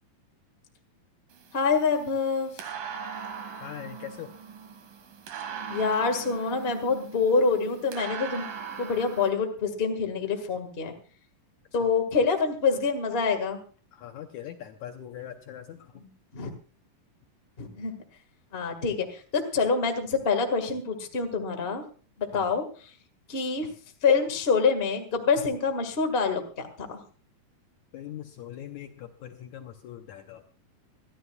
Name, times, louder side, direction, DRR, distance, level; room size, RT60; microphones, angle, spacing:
sound 1, 1.3-9.3, right 6 dB, 80° right, 3.6 m, -40 dB
voice 1, 1.5-2.5 5.7-8.4 8.8-10.9 11.7-13.6 15.9-16.5 17.6-17.9 18.5-21.8 22.2-22.6 23.3-23.7 24.0-27.0, left 5 dB, 25° left, 5 dB, 1.2 m, -26 dB
voice 2, 3.6-4.3 13.9-15.8 22.3-22.4 27.9-30.5, left 10 dB, 70° left, 5 dB, 2.0 m, -41 dB
24.5 x 11.5 x 2.3 m, 0.39 s
omnidirectional pair, 4.0 m